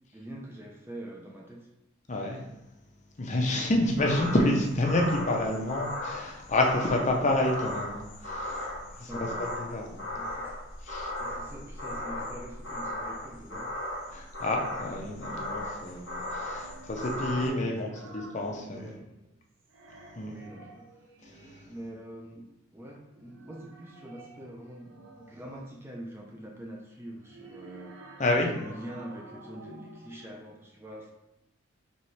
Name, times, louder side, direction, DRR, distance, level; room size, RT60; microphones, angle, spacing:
voice 1, 0.1-1.7 4.1-4.4 9.1-9.6 10.1-10.6 11.2-13.8 17.4-18.0 18.6-19.1 20.2-21.1 21.6-28.0 28.5-31.1, right 1 dB, 10° right, 0 dB, 0.5 m, -44 dB
voice 2, 2.1-2.4 3.2-10.0 10.8-11.1 14.1-18.9 20.1-20.4 21.2-21.7 28.2-28.5, left 1 dB, 35° left, 1 dB, 0.6 m, -29 dB
sound 1, 3.9-17.5, left 1 dB, 60° left, 1.2 m, -37 dB
sound 2, 16.4-19.3 19.6-21.9 23.0-25.6 27.0-30.3, right 2 dB, 65° right, 0.7 m, -51 dB
4.3 x 3.1 x 3.2 m, 0.91 s
head